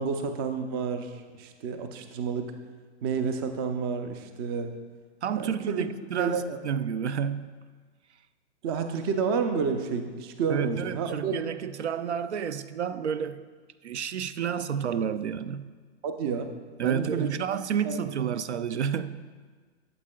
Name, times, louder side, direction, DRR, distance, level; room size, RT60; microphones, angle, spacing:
voice 1, 0.0-2.5 3.0-4.7 5.3-5.9 6.2-6.6 8.6-11.5 16.0-16.5 16.8-17.3 17.8-18.0, right 5 dB, 20° right, 7 dB, 0.4 m, -30 dB
voice 2, 5.2-7.6 10.5-13.4 13.8-15.7 16.8-19.3, right 8 dB, 75° right, 13 dB, 0.5 m, -30 dB
12.5 x 7.7 x 2.2 m, 1.5 s
figure-of-eight pair, 120°, 34 cm